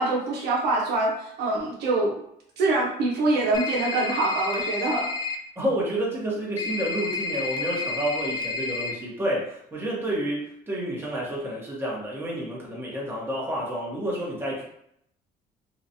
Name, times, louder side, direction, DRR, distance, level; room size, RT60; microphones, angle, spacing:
voice 1, 0.0-2.2 2.6-5.1, right 2 dB, 75° right, -3 dB, 0.8 m, -24 dB
sound 1, 3.5-5.3 6.6-8.9, left 3 dB, 25° left, 0.4 m, -30 dB
voice 2, 5.6-14.6, right 1 dB, 15° right, -5 dB, 1.1 m, -29 dB
2.9 x 2.4 x 2.6 m, 0.73 s
cardioid pair, 110°, 17 cm